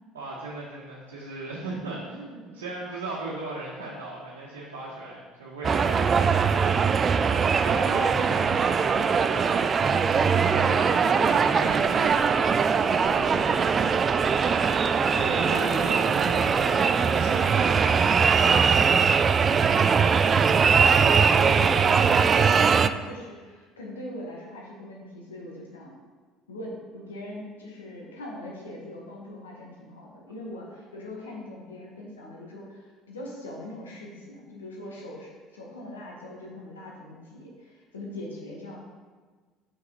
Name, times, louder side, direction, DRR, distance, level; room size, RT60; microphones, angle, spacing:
voice 1, 0.1-9.8 10.3-14.5 15.1-19.3, right 2 dB, 85° right, -6 dB, 1.1 m, -38 dB
sound 1, 5.6-22.9, right 6 dB, 40° right, 0.3 m, -21 dB
voice 2, 8.8-9.1 15.2-15.9 20.3-25.9 26.5-38.8, left 1 dB, 90° left, -2 dB, 1.4 m, -40 dB
5.8 x 5.6 x 4.0 m, 1.4 s
hypercardioid pair, 65°, 0 cm